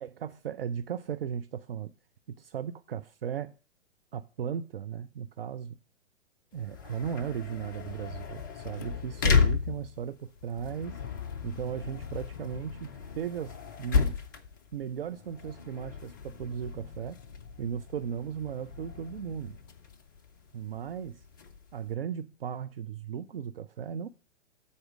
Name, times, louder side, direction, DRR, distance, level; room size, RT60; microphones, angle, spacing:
voice 1, 0.0-1.9 2.3-3.5 4.1-5.8 6.5-11.0 11.4-14.2 14.7-17.2 17.6-19.6 20.5-21.2 21.7-24.1, right 8 dB, 50° right, 0.6 m, -36 dB
sound 1, 6.5-21.9, left 5 dB, 20° left, 0.4 m, -33 dB
12.5 x 4.3 x 6.2 m
figure-of-eight pair, 115°, 37 cm